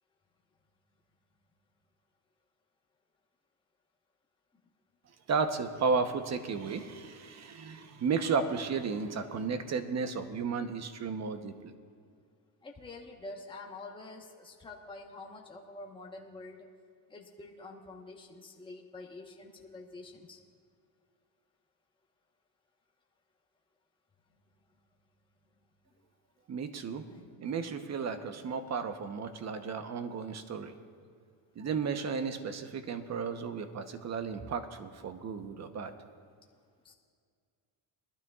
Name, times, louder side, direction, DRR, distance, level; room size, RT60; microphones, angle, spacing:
voice 1, 5.3-11.7 26.5-27.1 27.4-30.7 31.6-35.9, right 5 dB, 35° right, 8 dB, 0.9 m, -33 dB
voice 2, 12.6-16.7 17.1-20.4 27.1-27.3 36.8-36.9, left 2 dB, 10° left, -1 dB, 1.1 m, -47 dB
21.0 x 12.5 x 2.4 m, 2.2 s
cardioid pair, 125°, 44 cm